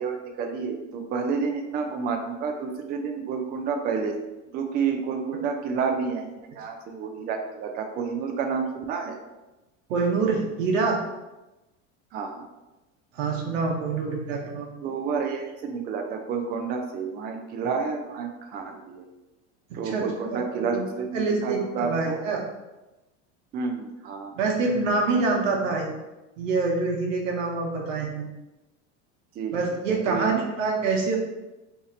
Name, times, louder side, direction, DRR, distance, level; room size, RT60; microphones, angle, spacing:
voice 1, 0.0-4.1 4.5-6.3 6.5-9.2 12.1-12.4 14.8-19.1 19.7-22.2 23.5-24.4 29.4-29.5 30.1-30.4, right 5 dB, 25° right, 4 dB, 0.4 m, -30 dB
voice 2, 9.9-11.0 13.1-14.7 19.7-20.0 20.3-20.9 21.1-22.4 24.3-25.9 26.4-28.3 29.5-31.2, right 4 dB, 90° right, 0 dB, 0.9 m, -26 dB
2.8 x 2.4 x 4.2 m, 1.0 s
supercardioid pair, 110°, 37 cm